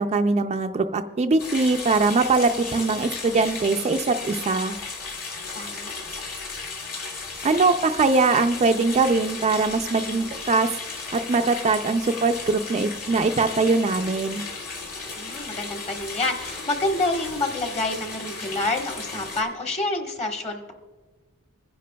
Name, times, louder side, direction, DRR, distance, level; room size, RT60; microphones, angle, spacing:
voice 1, 0.0-4.7 7.4-10.7 11.1-14.4, right 3 dB, 30° right, 6 dB, 0.4 m, -22 dB
sound 1, 1.4-19.4, left 4 dB, 75° left, 2.2 m, -35 dB
voice 2, 5.5-5.9 15.1-20.7, left 2 dB, 30° left, 3 dB, 1.2 m, -28 dB
25.5 x 10.0 x 2.3 m, 1.3 s
head